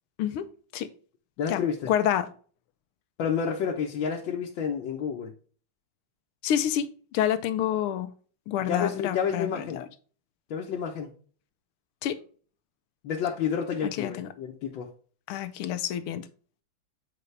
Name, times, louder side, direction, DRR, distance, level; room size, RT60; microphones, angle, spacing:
voice 1, 1.4-1.9 3.2-5.3 8.7-9.8 10.5-11.1 13.0-14.9, left 7 dB, 65° left, 1.6 m, -30 dB
voice 2, 1.9-2.3 6.4-8.1 8.5-9.9 12.0-12.2 13.8-14.3 15.3-16.3, left 10 dB, 80° left, 1.6 m, -28 dB
8.2 x 4.9 x 3.3 m
omnidirectional pair, 2.4 m